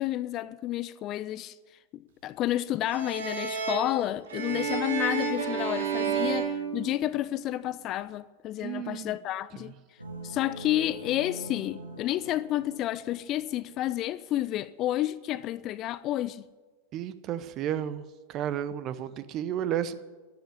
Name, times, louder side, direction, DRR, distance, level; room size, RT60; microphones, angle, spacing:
voice 1, 0.0-1.6 1.9-9.7 10.2-16.4, left 14 dB, 35° left, 0.5 m, -30 dB
sound 1, 2.8-7.5, right 6 dB, 65° right, 2.5 m, -31 dB
voice 2, 8.6-9.2 16.9-18.0 18.3-20.0, right 10 dB, 35° right, 0.9 m, -32 dB
sound 2, 10.0-14.0, right 1 dB, 85° right, 2.0 m, -44 dB
11.5 x 11.5 x 9.9 m
figure-of-eight pair, 90°, 0 cm